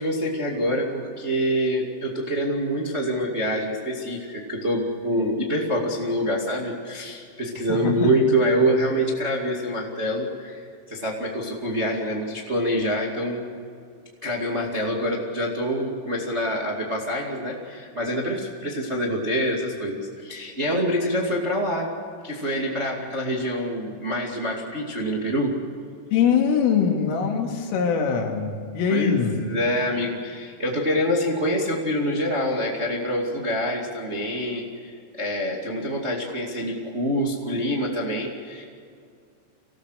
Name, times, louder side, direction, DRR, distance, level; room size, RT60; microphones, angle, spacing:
voice 1, 0.0-13.4 14.2-21.9 22.2-25.5 28.9-38.6, equal, 35° right, -1 dB, 1.1 m, -26 dB
voice 2, 26.1-29.4, left 6 dB, 90° left, 2 dB, 5.0 m, -22 dB
26.0 x 18.0 x 6.5 m, 2.3 s
omnidirectional pair, 5.6 m